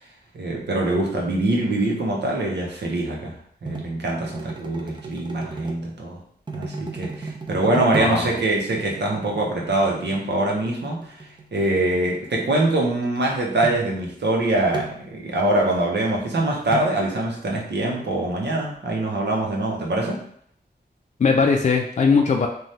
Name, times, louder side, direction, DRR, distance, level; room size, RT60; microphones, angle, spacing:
voice 1, 0.3-3.4 3.6-6.2 6.5-11.1 11.5-20.2, right 2 dB, 90° right, -1 dB, 0.7 m, -23 dB
sound 1, 3.6-5.9 6.5-8.3 8.6-12.3 13.2-13.3 13.6-14.0 14.7-15.1 16.7-17.1, right 3 dB, 25° right, 0.4 m, -35 dB
voice 2, 7.9-8.4 21.2-22.5, left 5 dB, 45° left, 2 dB, 0.4 m, -19 dB
3.1 x 2.2 x 2.7 m, 0.65 s
wide cardioid pair, 70°, 17 cm